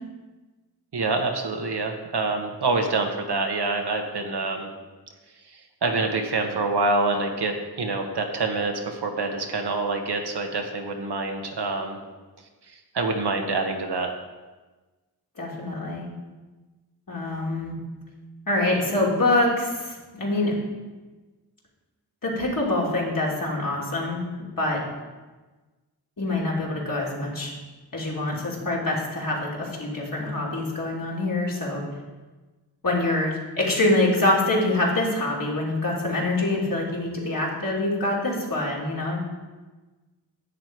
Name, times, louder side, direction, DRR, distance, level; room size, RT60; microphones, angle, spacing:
voice 1, 0.9-4.7 5.8-12.0 12.9-14.1, right 3 dB, 75° right, 3 dB, 1.4 m, -26 dB
voice 2, 15.4-16.1 17.1-17.7 18.5-20.6 22.2-24.2 24.6-24.8 26.2-27.5 27.9-31.8 32.8-39.2, left 2 dB, 55° left, -4 dB, 3.1 m, -25 dB
10.5 x 7.6 x 4.7 m, 1.2 s
cardioid pair, 50°, 40 cm